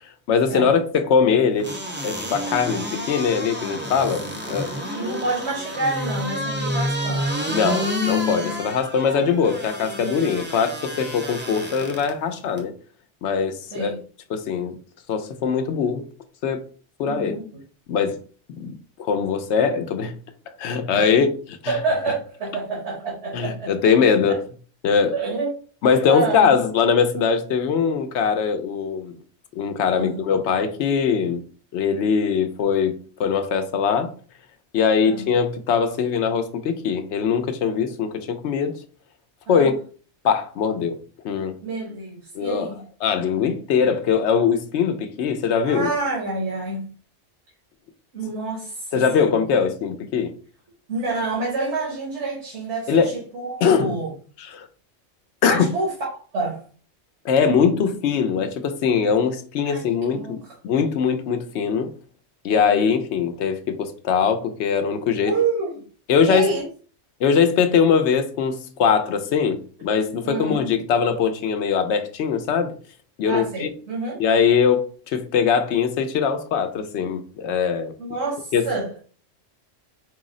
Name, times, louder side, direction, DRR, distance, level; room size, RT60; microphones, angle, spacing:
voice 1, 0.3-1.7 2.0-4.7 7.5-12.7 13.2-13.9 14.3-14.8 15.1-16.0 16.4-16.6 17.0-17.4 17.9-18.2 18.6-18.7 19.0-20.1 20.6-21.7 23.3-24.4 24.8-25.2 25.8-29.2 29.6-31.4 31.7-34.1 34.7-38.7 39.5-39.7 40.2-41.0 41.2-41.6 42.3-42.7 43.0-45.9 48.9-50.3 52.9-53.1 53.6-53.9 54.4-54.7 55.4-55.7 57.2-61.9 62.4-65.4 66.1-66.5 67.2-72.7 73.2-73.7 74.2-77.9 78.5-78.7, left 6 dB, 80° left, 0.9 m, -21 dB
sound 1, 1.6-12.1 12.6-12.7, left 1 dB, 20° right, 0.3 m, -29 dB
voice 2, 4.9-7.4 9.9-10.1 13.7-14.0 17.0-17.6 20.9-21.1 21.7-23.7 24.3-24.4 25.1-25.5 26.1-26.6 29.9-30.3 35.0-35.3 39.5-39.7 41.6-42.8 45.6-46.9 48.1-49.4 50.9-54.1 55.4-56.1 56.3-56.6 59.6-60.4 62.5-62.8 65.2-65.8 66.2-66.6 70.2-70.6 73.2-74.2 78.0-79.0, right 3 dB, 85° right, 1.5 m, -28 dB
4.6 x 2.0 x 3.7 m
omnidirectional pair, 1.2 m